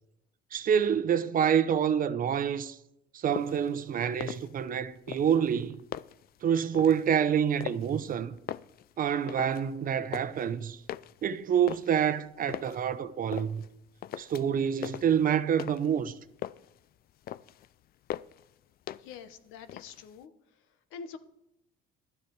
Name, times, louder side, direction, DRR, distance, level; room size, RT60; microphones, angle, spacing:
voice 1, 0.5-2.8 3.1-5.8 6.4-8.3 9.0-10.8 11.2-13.6 14.2-16.1, right 8 dB, 45° right, 0.7 m, -27 dB
sound 1, 3.3-3.7 4.1-4.8 5.1-6.3 6.7-7.1 7.6-8.1 8.4-9.7 9.9-10.4 10.9-12.8 13.3-13.7 14.0-14.6 14.8-16.0 16.2-16.8 17.1-17.7 18.1-18.5 18.9-19.3 19.6-20.2, left 12 dB, 50° left, 0.4 m, -40 dB
voice 2, 19.0-20.3 20.9-21.2, left 6 dB, 85° left, 1.0 m, -45 dB
12.0 x 10.0 x 4.7 m
cardioid pair, 115°, 20 cm